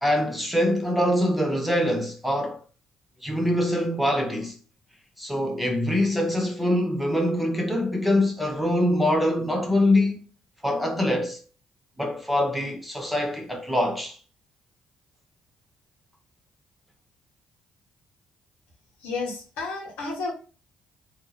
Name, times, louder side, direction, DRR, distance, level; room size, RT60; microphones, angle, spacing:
voice 1, 0.0-2.6 3.2-4.5 5.2-10.2 10.6-11.4 12.0-14.2, left 1 dB, ahead, 0.9 m, -24 dB
voice 2, 19.0-20.3, left 3 dB, 85° left, 1.1 m, -31 dB
2.8 x 2.1 x 3.9 m
supercardioid pair, 65°, 3 cm